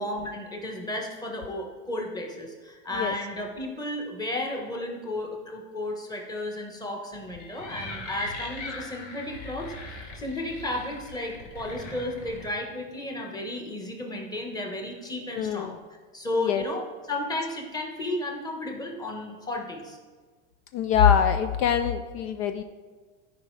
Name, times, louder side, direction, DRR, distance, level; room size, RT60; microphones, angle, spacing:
voice 1, 0.0-9.7 10.1-15.8 16.1-20.0, left 1 dB, 10° left, 1 dB, 1.2 m, -33 dB
Drum, 7.1-9.0 9.6-10.9 11.6-13.1, left 1 dB, 35° left, 2.7 m, -47 dB
sound 1, 7.3-12.4, left 2 dB, 90° left, 1.7 m, -40 dB
voice 2, 15.4-15.7 16.4-16.6 20.7-22.6, left 8 dB, 65° left, 9 dB, 0.5 m, -23 dB
13.5 x 5.1 x 3.2 m, 1.4 s
supercardioid pair, 140°, 35 cm